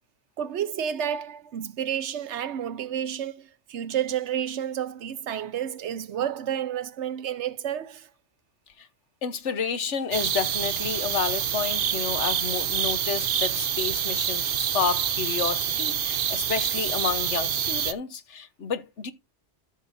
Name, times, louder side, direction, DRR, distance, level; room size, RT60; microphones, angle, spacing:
voice 1, 0.4-8.1, right 9 dB, 80° right, 1.1 m, -30 dB
voice 2, 9.2-19.1, left 6 dB, 90° left, 1.4 m, -30 dB
sound 1, 10.1-17.9, right 9 dB, 60° right, 0.8 m, -27 dB
13.5 x 6.7 x 2.6 m
omnidirectional pair, 1.2 m